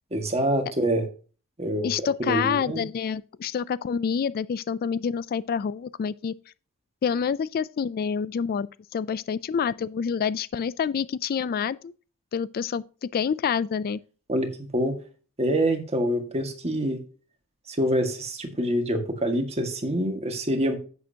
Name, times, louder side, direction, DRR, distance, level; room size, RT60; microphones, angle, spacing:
voice 1, 0.1-1.0 1.6-1.9 2.2-2.8 14.3-15.0 15.4-17.0 17.7-20.8, right 1 dB, 30° right, 1.8 m, -26 dB
voice 2, 1.8-6.3 7.0-8.7 8.9-11.9 12.3-14.0, left 7 dB, 45° left, 0.3 m, -27 dB
10.5 x 8.4 x 2.8 m
head